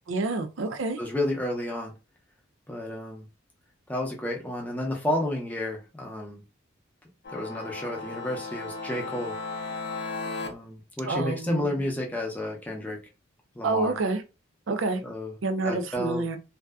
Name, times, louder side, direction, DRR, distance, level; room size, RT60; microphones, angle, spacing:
voice 1, 0.1-1.0 11.1-11.8 13.6-14.2 14.7-15.0 15.4-16.4, right 3 dB, 75° right, 0.4 m, -28 dB
voice 2, 1.0-1.9 2.7-3.3 3.9-6.4 7.3-9.3 10.4-13.0 13.5-13.9 15.0-15.3 15.7-16.3, left 1 dB, 10° left, 0.5 m, -31 dB
sound 1, 7.2-10.5, left 3 dB, 55° left, 0.4 m, -35 dB
2.6 x 2.1 x 2.2 m
head